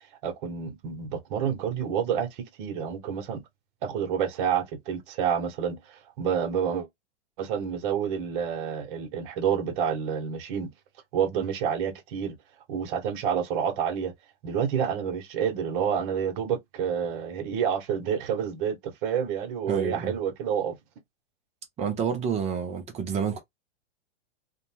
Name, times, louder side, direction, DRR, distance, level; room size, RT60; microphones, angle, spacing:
voice 1, 0.2-3.4 3.8-6.9 7.4-10.7 11.1-12.4 12.7-14.1 14.4-20.8, right 8 dB, 45° right, 0.9 m, -28 dB
voice 2, 19.7-20.1 21.8-23.4, right 6 dB, 20° right, 0.5 m, -29 dB
2.6 x 2.0 x 2.9 m
hypercardioid pair, 135°, 34 cm